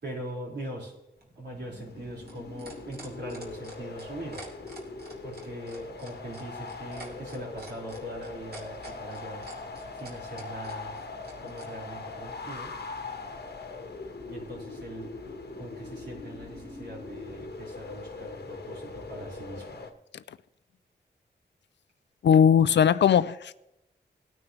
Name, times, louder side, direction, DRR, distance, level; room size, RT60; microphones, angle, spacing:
voice 1, 0.0-0.9 1.4-4.4 5.2-9.4 9.9-11.0 11.4-12.7 14.3-15.1 15.6-19.8, right 1 dB, 75° right, 4.8 m, -41 dB
sound 1, 1.2-11.7 12.9-13.0, right 2 dB, 60° right, 3.0 m, -47 dB
sound 2, 1.5-19.9, left 3 dB, 65° left, 1.3 m, -41 dB
voice 2, 22.2-23.5, left 8 dB, 80° left, 0.4 m, -19 dB
17.5 x 9.5 x 3.2 m
wide cardioid pair, 75°, 18 cm